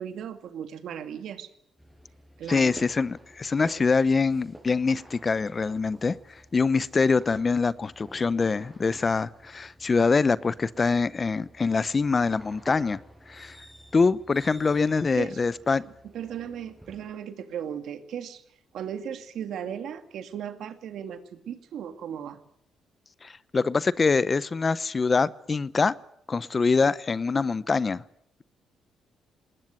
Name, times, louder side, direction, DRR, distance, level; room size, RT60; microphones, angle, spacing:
voice 1, 0.0-1.5 2.4-2.7 14.5-14.8 15.1-15.4 15.7-18.4 18.7-22.4, right 9 dB, 75° right, 9 dB, 2.2 m, -37 dB
sound 1, 1.8-17.1, equal, ahead, 6.3 m, -50 dB
voice 2, 2.5-6.1 6.5-13.0 13.3-13.6 13.9-15.8 23.2-25.9 26.3-28.0, left 4 dB, 30° left, 18 dB, 0.8 m, -24 dB
20.0 x 19.5 x 9.5 m, 0.72 s
cardioid pair, 90°, 0 cm